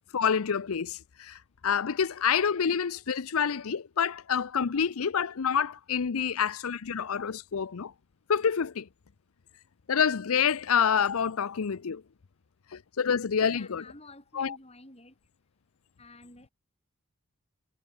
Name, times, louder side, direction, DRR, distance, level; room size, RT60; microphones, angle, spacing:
voice 1, 0.1-7.9 8.3-8.9 9.9-12.0 12.7-13.8 14.3-14.6, left 7 dB, 90° left, 0.6 m, -27 dB
voice 2, 13.5-15.1 16.0-16.5, left 2 dB, 30° left, 6.0 m, -50 dB
head